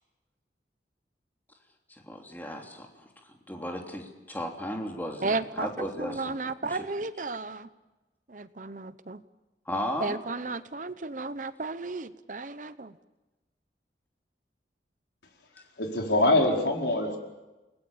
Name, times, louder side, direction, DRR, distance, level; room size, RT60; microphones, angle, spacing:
voice 1, 2.0-6.4 9.7-10.2, equal, 10° left, 1 dB, 3.1 m, -35 dB
voice 2, 5.2-7.7 8.3-9.2 10.0-13.0, right 3 dB, 45° right, 13 dB, 0.9 m, -34 dB
voice 3, 15.8-17.2, left 2 dB, 75° left, 1 dB, 4.7 m, -24 dB
29.5 x 20.0 x 7.3 m, 1.1 s
head